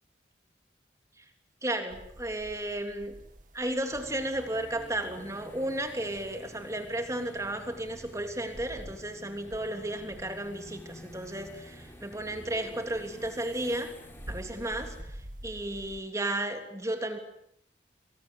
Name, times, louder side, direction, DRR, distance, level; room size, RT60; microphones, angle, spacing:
voice 1, 1.6-3.1 3.5-13.9 14.3-17.2, right 1 dB, 15° right, 6 dB, 3.2 m, -34 dB
sound 1, 1.9-6.9 7.2-9.2 9.4-12.2 12.5-16.0, equal, 45° right, 2.1 m, -48 dB
sound 2, 3.9-15.0, left 1 dB, 10° left, 3.9 m, -50 dB
28.0 x 25.0 x 8.1 m, 0.73 s
head